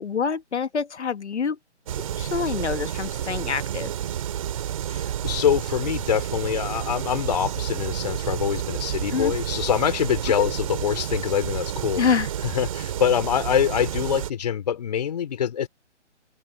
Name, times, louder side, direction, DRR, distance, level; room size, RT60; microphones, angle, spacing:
voice 1, 0.0-1.6 2.1-3.9 9.1-9.3 12.0-12.3, left 6 dB, 70° left, 1.5 m, -26 dB
sound 1, 1.9-14.3, right 10 dB, 30° right, 3.3 m, -30 dB
voice 2, 4.9-12.0 12.4-15.7, left 9 dB, 35° left, 3.3 m, -25 dB
open air
hypercardioid pair, 170°, 36 cm